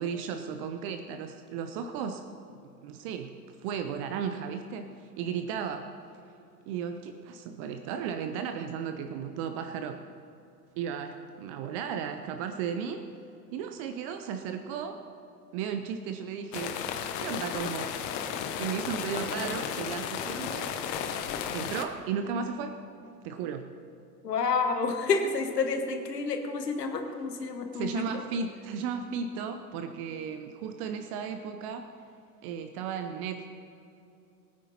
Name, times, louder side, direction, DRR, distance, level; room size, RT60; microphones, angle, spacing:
voice 1, 0.0-2.2 2.5-3.3 3.6-5.9 6.7-10.0 10.8-13.1 13.5-15.0 15.5-16.8 17.2-18.0 18.6-20.7 21.5-22.8 23.2-23.7 27.7-31.9 32.4-33.5, right 7 dB, 25° right, 7 dB, 0.4 m, -35 dB
sound 1, 16.5-21.8, left 8 dB, 35° left, 1.0 m, -34 dB
voice 2, 24.2-28.2, left 4 dB, 70° left, 5 dB, 1.6 m, -29 dB
20.0 x 9.4 x 4.2 m, 2.8 s
figure-of-eight pair, 85°, 49 cm